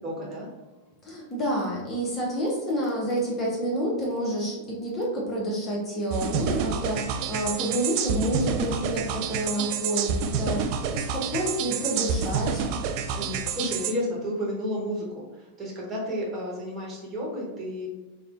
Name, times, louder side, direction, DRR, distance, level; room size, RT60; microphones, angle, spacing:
voice 1, 0.0-0.5 13.2-17.9, equal, 20° right, -4 dB, 1.2 m, -32 dB
voice 2, 1.0-12.6, right 1 dB, 25° left, -3 dB, 0.9 m, -29 dB
sound 1, 6.1-13.9, right 6 dB, 45° right, 0.3 m, -28 dB
4.6 x 2.2 x 2.5 m, 1.2 s
figure-of-eight pair, 90°, 0 cm